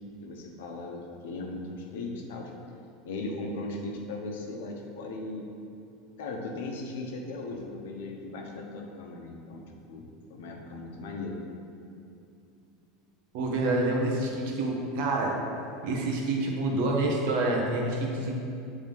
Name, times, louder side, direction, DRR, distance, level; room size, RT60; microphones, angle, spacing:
voice 1, 0.2-2.5 3.0-5.5 6.2-9.6 9.9-11.3, left 2 dB, 80° left, 1 dB, 0.9 m, -38 dB
voice 2, 13.3-15.3 15.8-18.4, right 2 dB, 70° right, 0 dB, 1.0 m, -27 dB
7.4 x 3.6 x 3.6 m, 2.6 s
hypercardioid pair, 100°, 0 cm